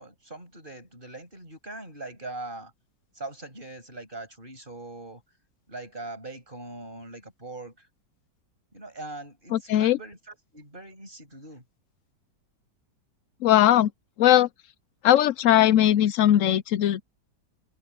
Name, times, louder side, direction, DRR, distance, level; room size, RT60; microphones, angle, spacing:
voice 1, 0.0-2.7 3.2-5.2 5.7-7.9 8.7-11.6, right 2 dB, 25° right, 7.3 m, -41 dB
voice 2, 9.5-10.0 13.4-13.9 14.2-14.5 15.0-17.0, left 12 dB, 90° left, 0.7 m, -19 dB
open air
omnidirectional pair, 1.9 m